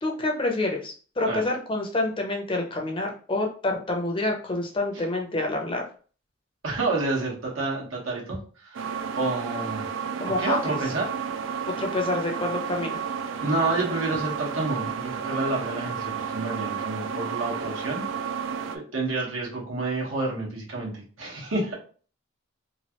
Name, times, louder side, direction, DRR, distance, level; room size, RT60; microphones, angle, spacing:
voice 1, 0.0-5.9 10.2-10.8 11.7-13.0, left 2 dB, 25° left, 1 dB, 0.6 m, -27 dB
voice 2, 6.6-8.9 9.2-9.9 10.4-11.2 13.4-18.0 18.9-21.7, right 2 dB, 85° right, -3 dB, 1.2 m, -29 dB
sound 1, 8.7-18.8, right 7 dB, 70° right, 0.3 m, -32 dB
3.1 x 2.4 x 2.9 m, 0.40 s
head